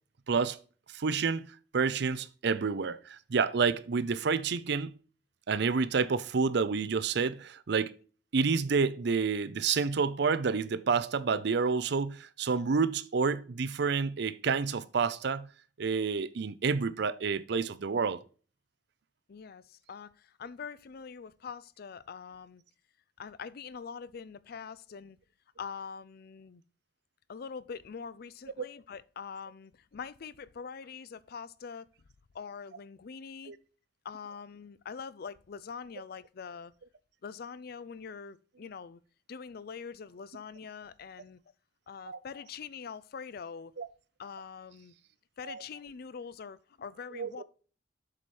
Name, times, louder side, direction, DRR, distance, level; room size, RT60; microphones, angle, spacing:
voice 1, 0.3-0.6 0.9-1.5 1.7-4.9 5.5-7.9 8.3-15.5 15.8-18.2 33.5-33.6 42.0-42.2 43.8-43.9 45.5-45.6 47.1-47.4, right 5 dB, 60° right, 0.5 m, -29 dB
voice 2, 19.3-22.6 23.2-25.2 25.6-26.6 27.3-31.9 32.3-33.5 34.0-36.7 37.2-39.0 39.3-41.4 41.9-43.7 44.2-44.9 45.4-47.4, left 6 dB, 55° left, 0.4 m, -44 dB
7.7 x 4.8 x 4.2 m
head